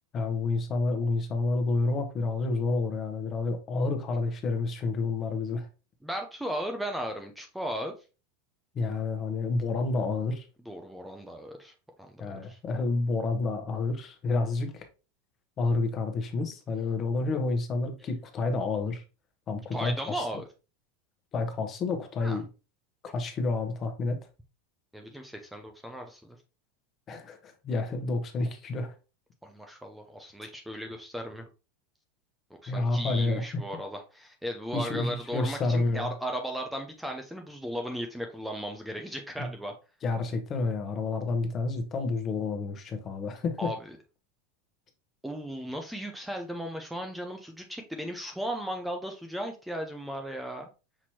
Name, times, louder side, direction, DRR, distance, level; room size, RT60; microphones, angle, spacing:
voice 1, 0.1-5.7 8.7-10.5 12.2-14.9 15.6-19.0 19.5-20.2 21.3-22.5 23.0-24.2 27.1-28.9 32.7-33.4 34.7-36.1 39.4-39.5 40.0-43.7, left 3 dB, 35° left, 1.1 m, -29 dB
voice 2, 6.0-7.9 10.7-11.7 12.0-12.6 19.7-20.5 22.2-22.4 24.9-26.4 29.4-31.5 32.6-39.7 43.6-44.0 45.2-50.7, equal, 5° right, 0.6 m, -36 dB
6.1 x 2.9 x 2.8 m
hypercardioid pair, 110°, 0 cm